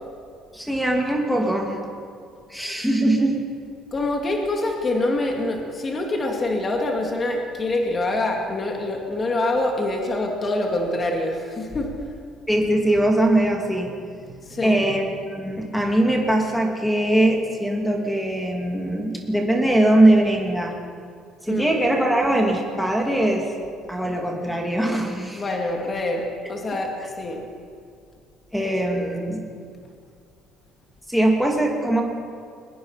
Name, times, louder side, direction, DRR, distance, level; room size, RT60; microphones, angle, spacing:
voice 1, 0.5-1.8 2.5-3.4 12.5-14.0 14.2-20.7 21.4-23.5 23.9-25.4 28.5-29.4 31.1-32.0, right 1 dB, ahead, 1 dB, 2.5 m, -21 dB
voice 2, 3.9-12.0 14.4-14.8 21.5-21.8 25.3-27.5 28.9-29.1, left 2 dB, 20° left, 1 dB, 2.4 m, -25 dB
22.0 x 20.5 x 5.8 m, 2.3 s
cardioid pair, 175°, 0 cm